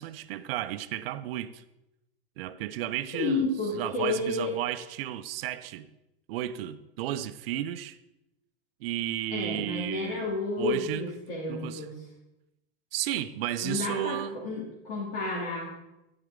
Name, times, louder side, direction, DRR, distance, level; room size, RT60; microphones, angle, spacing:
voice 1, 0.0-1.6 2.4-3.5 3.7-5.9 6.3-8.0 8.8-11.1 11.5-11.9 12.9-14.4, right 12 dB, 70° right, 0.6 m, -33 dB
voice 2, 3.1-4.5 9.3-12.0 13.6-14.2 14.4-15.7, left 3 dB, 65° left, 2.7 m, -31 dB
9.9 x 7.7 x 3.7 m
supercardioid pair, 120°, 30 cm